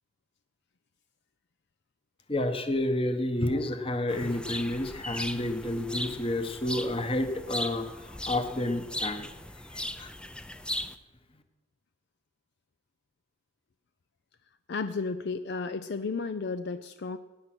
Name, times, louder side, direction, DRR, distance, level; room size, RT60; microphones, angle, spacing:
voice 1, 2.3-9.3 9.7-10.1, left 1 dB, 25° left, 7 dB, 1.2 m, -30 dB
sound 1, 4.1-11.0, left 1 dB, 5° left, 0.5 m, -38 dB
voice 2, 14.7-17.2, left 4 dB, 55° left, 10 dB, 0.5 m, -33 dB
18.0 x 10.0 x 6.1 m, 1.2 s
head